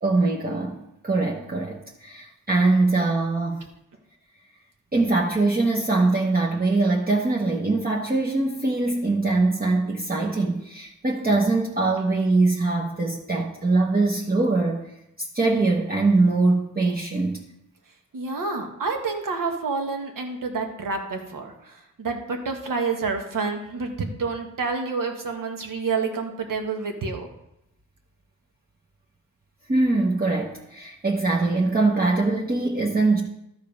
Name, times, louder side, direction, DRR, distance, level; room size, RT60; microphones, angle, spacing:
voice 1, 0.0-3.7 4.9-14.8 15.2-17.4 29.7-33.2, right 3 dB, 30° right, -2 dB, 0.9 m, -22 dB
voice 2, 18.1-27.3, right 4 dB, 80° right, 4 dB, 1.4 m, -28 dB
13.0 x 5.0 x 5.2 m, 0.85 s
wide cardioid pair, 125°, 32 cm